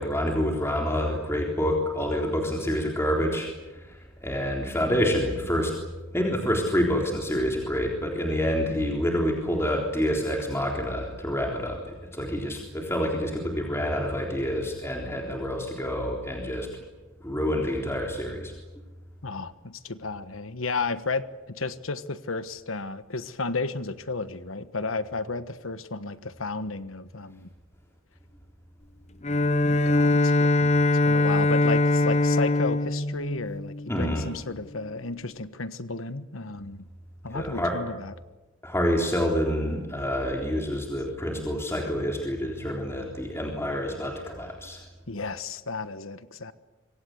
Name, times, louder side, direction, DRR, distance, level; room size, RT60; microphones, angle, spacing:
voice 1, 0.0-5.8 6.1-16.7 17.2-18.5 33.9-34.3 37.3-37.7 38.6-44.8, equal, 15° left, 0 dB, 3.7 m, -27 dB
voice 2, 19.2-27.5 29.6-30.7 31.0-36.9 37.2-38.1 45.1-46.5, left 3 dB, 80° left, 13 dB, 1.4 m, -33 dB
Bowed string instrument, 29.2-34.3, left 2 dB, 35° left, 0.8 m, -22 dB
26.0 x 24.5 x 7.9 m, 1.1 s
head